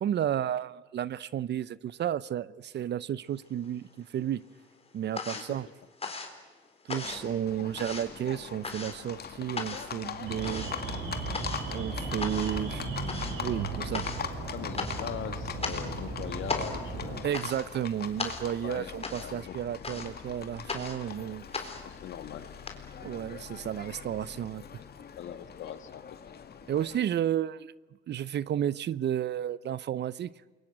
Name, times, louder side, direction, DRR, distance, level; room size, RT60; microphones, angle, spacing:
voice 1, 0.0-4.4 4.9-5.7 6.9-10.7 11.7-12.9 13.4-14.1 17.2-21.4 23.0-24.6 26.7-27.7 28.1-30.3, right 10 dB, 60° right, 19 dB, 0.8 m, -32 dB
sound 1, 3.4-4.2 4.4-22.7, left 4 dB, 30° left, 4.1 m, -39 dB
Livestock farm animals working animals, 7.0-27.0, left 7 dB, 55° left, 2.2 m, -42 dB
Alarm, 10.3-17.2, right 3 dB, 90° right, 7.9 m, -36 dB
voice 2, 14.5-17.3 18.6-19.6 21.8-22.5 25.2-26.0, left 10 dB, 75° left, 11 dB, 1.7 m, -41 dB
28.5 x 23.0 x 9.2 m, 1.3 s
cardioid pair, 90°, 20 cm